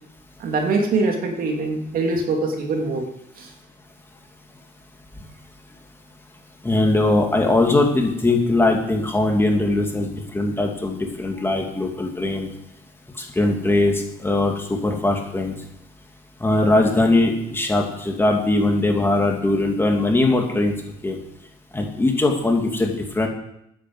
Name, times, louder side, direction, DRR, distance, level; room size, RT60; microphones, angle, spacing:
voice 1, 0.4-3.1 3.4-3.5, right 3 dB, 60° right, 2 dB, 2.7 m, -23 dB
voice 2, 6.6-12.5 13.2-15.5 16.4-20.7 21.0-21.2 21.7-23.3, left 2 dB, 15° left, 1 dB, 2.6 m, -20 dB
9.9 x 9.4 x 8.0 m, 0.79 s
cardioid pair, 110°, 17 cm